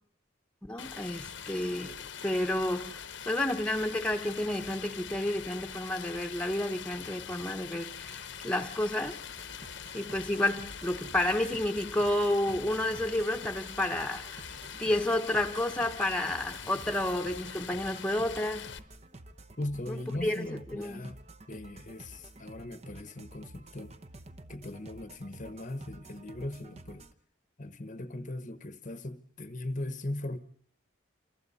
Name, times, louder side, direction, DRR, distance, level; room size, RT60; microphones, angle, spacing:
voice 1, 0.6-2.0 2.2-9.2 9.9-14.5 14.8-18.7 19.9-21.1, left 1 dB, 5° left, 1.1 m, -31 dB
Stream, 0.8-18.8, left 8 dB, 65° left, 1.0 m, -43 dB
sound 1, 9.3-27.1, right 2 dB, 35° right, 0.9 m, -51 dB
voice 2, 19.6-21.2 21.5-23.9 24.5-27.1 27.6-30.4, left 1 dB, 40° left, 1.0 m, -39 dB
29.5 x 27.0 x 4.2 m
head